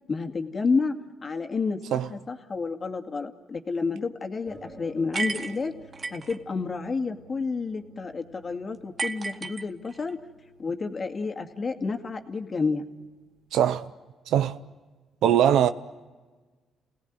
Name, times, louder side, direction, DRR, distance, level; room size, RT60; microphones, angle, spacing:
voice 1, 0.1-0.9 1.2-5.7 6.1-10.2 10.6-12.8, left 4 dB, 35° left, 2.3 m, -30 dB
sound 1, 4.5-13.6, right 2 dB, 20° right, 4.0 m, -53 dB
sound 2, 5.1-6.4 9.0-10.1, right 3 dB, 35° right, 1.5 m, -32 dB
voice 2, 13.5-13.9 14.3-14.6 15.2-15.7, right 10 dB, 80° right, 0.7 m, -21 dB
29.0 x 18.0 x 9.4 m
cardioid pair, 90°, 0 cm